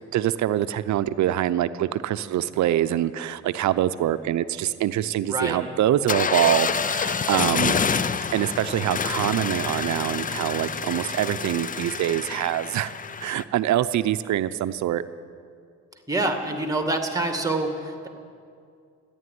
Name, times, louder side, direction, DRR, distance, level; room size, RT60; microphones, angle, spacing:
voice 1, 0.1-7.8 8.3-12.9 13.2-15.0, right 12 dB, 70° right, 13 dB, 0.6 m, -24 dB
voice 2, 5.3-5.6 16.1-18.1, right 2 dB, 10° right, 5 dB, 2.0 m, -26 dB
sound 1, 6.1-13.4, left 6 dB, 30° left, 0.5 m, -27 dB
14.0 x 10.5 x 9.4 m, 2.3 s
cardioid pair, 90°, 30 cm